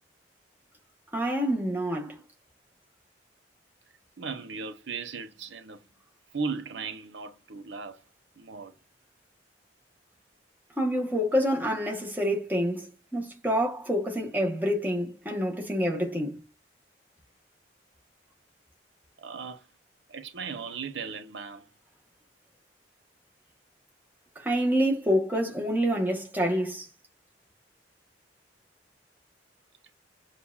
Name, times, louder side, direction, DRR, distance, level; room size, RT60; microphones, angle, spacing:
voice 1, 1.1-2.2 10.8-16.4 24.4-26.9, equal, 10° right, 1.1 m, -27 dB
voice 2, 4.2-5.8 6.3-8.0 8.4-8.7 19.2-19.7 20.1-21.7, right 5 dB, 85° right, 0.7 m, -37 dB
7.0 x 2.5 x 2.3 m
head